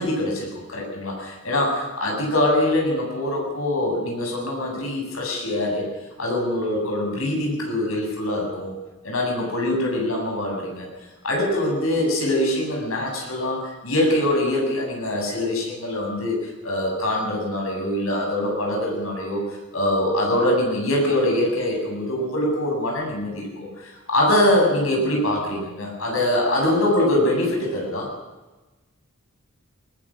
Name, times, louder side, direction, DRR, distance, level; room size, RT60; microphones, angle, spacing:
voice 1, 0.0-5.9 6.2-8.7 9.0-10.9 11.2-16.4 16.6-19.4 19.7-28.1, left 1 dB, 80° left, 0 dB, 8.0 m, -23 dB
20.5 x 20.5 x 6.5 m, 1.2 s
head